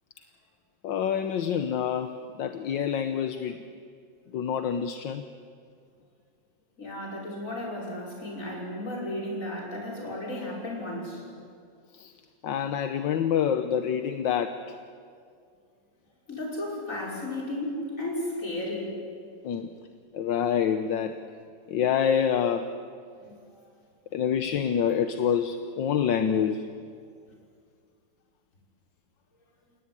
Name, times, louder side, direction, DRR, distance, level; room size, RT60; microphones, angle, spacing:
voice 1, 0.8-2.1 2.4-3.6 4.3-5.2 11.9-12.1 12.4-14.6 19.4-19.7 20.1-21.1 21.7-22.7 24.1-26.7, left 8 dB, 75° left, 8 dB, 1.6 m, -26 dB
voice 2, 6.8-11.2 16.3-19.0 19.5-19.6 23.2-23.4, left 1 dB, 40° left, -3 dB, 6.3 m, -34 dB
29.5 x 18.0 x 9.8 m, 2.3 s
omnidirectional pair, 2.1 m